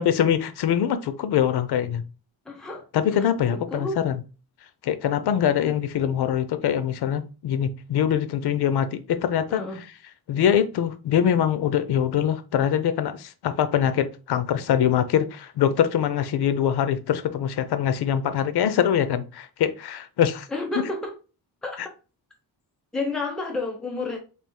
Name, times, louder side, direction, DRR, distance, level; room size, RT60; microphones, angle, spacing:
voice 1, 0.0-2.0 2.9-4.2 4.8-9.6 10.3-20.5, left 9 dB, 85° left, 0.6 m, -23 dB
voice 2, 2.4-4.0 9.5-9.8 20.5-21.1 21.6-21.8 22.9-24.2, left 2 dB, ahead, 0.6 m, -31 dB
3.5 x 2.5 x 4.5 m
wide cardioid pair, 160°, 38 cm